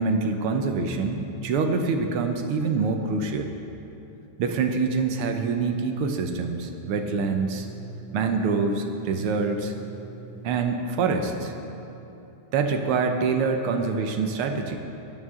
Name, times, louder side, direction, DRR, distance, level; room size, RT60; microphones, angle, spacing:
voice 1, 0.0-3.5 4.4-7.7 8.1-9.7 10.4-11.5 12.5-14.8, right 4 dB, 80° right, 5 dB, 1.8 m, -25 dB
sound 1, 5.9-11.1, right 5 dB, 5° right, 1.4 m, -44 dB
17.5 x 11.0 x 3.7 m, 2.9 s
omnidirectional pair, 2.4 m